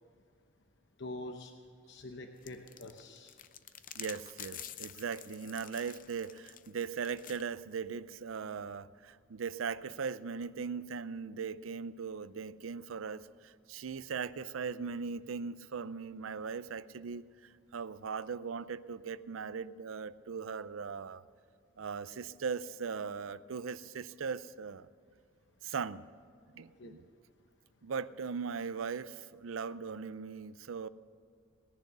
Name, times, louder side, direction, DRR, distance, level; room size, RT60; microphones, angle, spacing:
voice 1, 1.0-1.5 1.9-3.3 26.8-26.9, left 2 dB, 60° left, 0.9 m, -45 dB
sound 1, 2.4-7.4, left 10 dB, 45° left, 0.6 m, -48 dB
voice 2, 4.0-17.3 17.7-21.2 21.8-24.9 25.6-26.0 26.5-27.0 27.8-30.9, right 5 dB, 85° right, 0.5 m, -39 dB
18.5 x 10.5 x 6.7 m
head